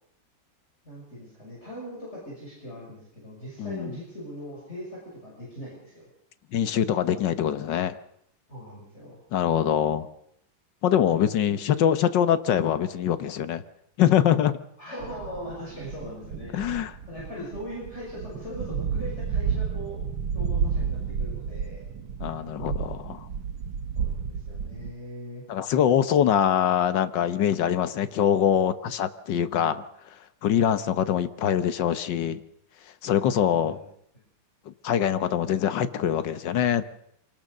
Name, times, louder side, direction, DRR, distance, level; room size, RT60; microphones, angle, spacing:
voice 1, 0.8-6.0 8.5-9.2 11.1-11.9 14.8-16.6 17.1-20.0 20.3-21.8 23.9-25.4 33.5-33.8, equal, 35° left, -5 dB, 6.7 m, -40 dB
voice 2, 3.6-3.9 6.5-8.0 9.3-10.1 10.8-13.6 14.0-14.5 16.5-16.9 22.2-23.3 25.5-29.8 30.4-32.4 33.0-33.8 34.8-36.8, left 9 dB, 65° left, 12 dB, 1.7 m, -23 dB
sound 1, 15.0-24.9, right 6 dB, 85° right, 1.9 m, -31 dB
25.5 x 18.5 x 6.6 m, 0.73 s
omnidirectional pair, 2.1 m